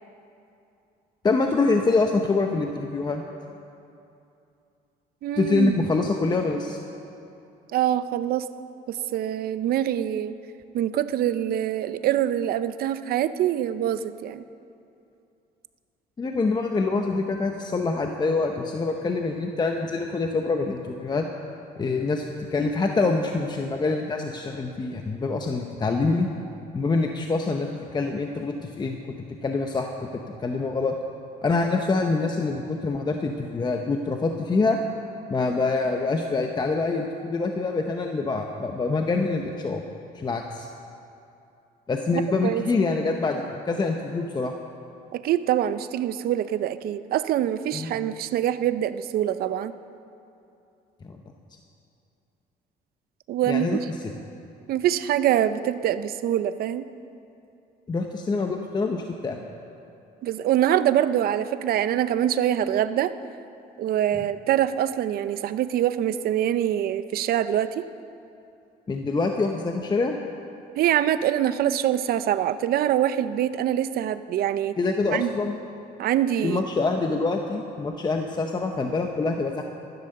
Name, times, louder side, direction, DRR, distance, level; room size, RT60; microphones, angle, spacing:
voice 1, 1.2-3.2 5.4-6.8 16.2-21.3 21.8-26.3 26.7-29.1 29.4-29.9 30.4-30.9 31.4-34.8 35.3-39.8 40.1-40.7 41.9-44.5 47.7-48.0 51.0-51.2 53.5-54.1 57.9-59.4 68.9-70.2 74.8-75.6 76.4-79.6, left 3 dB, 25° left, 3 dB, 0.9 m, -25 dB
voice 2, 5.2-5.8 7.7-8.5 8.9-10.3 10.7-14.4 42.1-42.6 45.1-49.7 53.3-53.8 54.7-56.9 60.2-63.1 63.8-67.8 70.8-74.8 75.1-75.3 76.0-76.6, right 11 dB, 65° right, 13 dB, 0.6 m, -24 dB
14.5 x 11.0 x 6.6 m, 2.6 s
cardioid pair, 110°, 17 cm